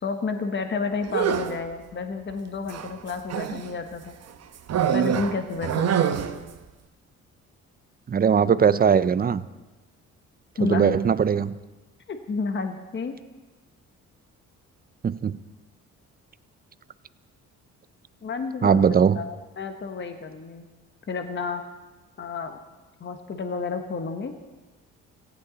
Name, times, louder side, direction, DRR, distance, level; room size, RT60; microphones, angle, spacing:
voice 1, 0.0-4.1 4.9-6.0 10.6-11.0 12.1-13.2 18.2-20.7 21.1-21.6 22.2-22.6 23.0-24.3, left 4 dB, 40° left, 6 dB, 1.2 m, -30 dB
sound 1, 1.1-1.7 2.7-3.7 4.7-6.5, right 9 dB, 60° right, 1.0 m, -25 dB
voice 2, 8.1-9.4 10.6-11.5 15.0-15.4 18.6-19.2, right 7 dB, 30° right, 15 dB, 0.6 m, -20 dB
17.5 x 15.5 x 4.0 m, 1.2 s
cardioid pair, 90°, 30 cm